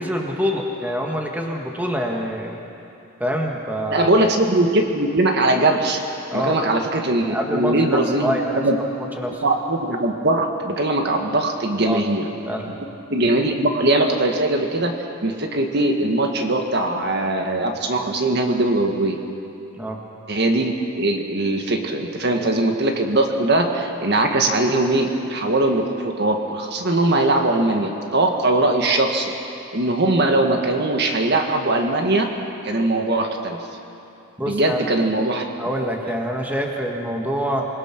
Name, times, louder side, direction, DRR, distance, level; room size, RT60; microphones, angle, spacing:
voice 1, 0.0-2.6 3.2-4.1 6.3-6.6 7.3-8.6 9.2-9.4 11.8-12.0 12.5-12.7 19.8-20.0 22.4-22.5 34.4-34.8 35.6-37.7, equal, 10° right, 0 dB, 1.7 m, -25 dB
voice 2, 3.9-6.0 6.3-8.4 8.6-8.8 9.4-12.3 13.1-14.9 15.2-19.2 20.3-29.3 29.7-32.3 32.6-33.6 34.5-35.4, right 2 dB, 50° right, 3 dB, 1.7 m, -20 dB
27.0 x 21.0 x 6.1 m, 2.7 s
head